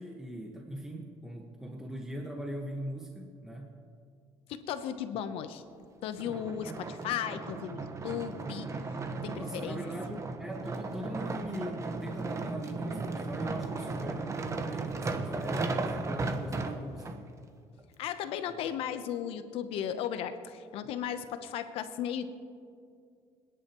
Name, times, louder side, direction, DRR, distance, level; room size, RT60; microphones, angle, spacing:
voice 1, 0.0-3.7 9.4-17.3, right 1 dB, 5° right, 0 dB, 1.4 m, -40 dB
voice 2, 4.5-5.6 6.0-9.8 10.1-10.2 18.0-22.3, left 9 dB, 75° left, 10 dB, 0.9 m, -36 dB
sound 1, 6.2-17.2 17.8-17.9, right 3 dB, 30° right, 1.2 m, -36 dB
27.0 x 10.5 x 3.1 m, 2.3 s
cardioid pair, 95°, 10 cm